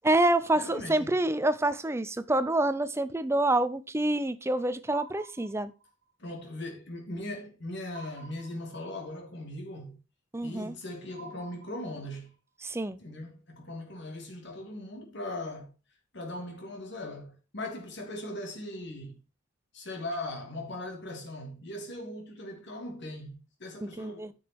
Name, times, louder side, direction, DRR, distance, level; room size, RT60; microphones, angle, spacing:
voice 1, 0.0-5.7 10.3-10.7 12.6-13.0 23.8-24.3, right 1 dB, 10° right, 0.5 m, -27 dB
voice 2, 0.5-1.1 6.2-10.0 10.4-12.3 13.0-15.7 16.1-19.2 19.7-24.3, left 1 dB, 55° left, 3.1 m, -39 dB
sound 1, 4.9-6.1 7.9-9.1 11.1-12.3, right 5 dB, 50° right, 1.7 m, -51 dB
9.7 x 6.2 x 4.7 m
head